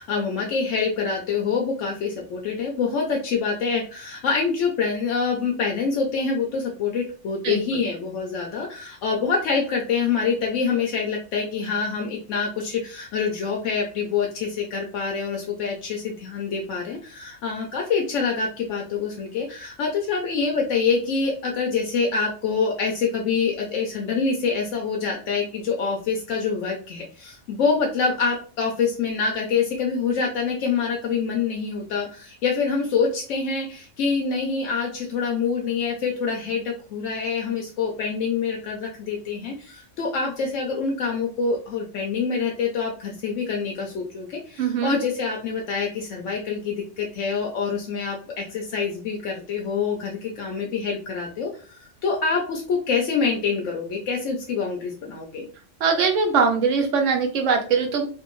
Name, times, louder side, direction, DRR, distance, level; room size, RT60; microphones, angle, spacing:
voice 1, 0.0-55.5, left 5 dB, 75° left, 0 dB, 1.0 m, -26 dB
voice 2, 7.4-7.8 44.6-45.0 55.8-58.1, right 5 dB, 75° right, 4 dB, 1.1 m, -22 dB
3.3 x 2.6 x 3.0 m, 0.40 s
omnidirectional pair, 1.3 m